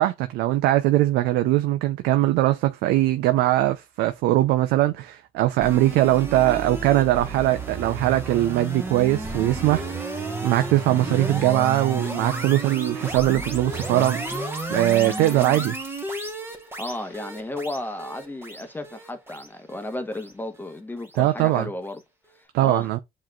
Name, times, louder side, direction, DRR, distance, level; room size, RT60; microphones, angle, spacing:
voice 1, 0.0-10.1 10.4-14.2 14.7-15.8 21.2-21.7 22.5-23.0, right 15 dB, 85° right, 0.5 m, -21 dB
sound 1, 5.6-20.8, right 2 dB, 15° right, 1.2 m, -32 dB
voice 2, 16.8-22.0 22.6-22.9, left 1 dB, 10° left, 1.0 m, -33 dB
7.3 x 3.1 x 2.3 m
cardioid pair, 110°, 17 cm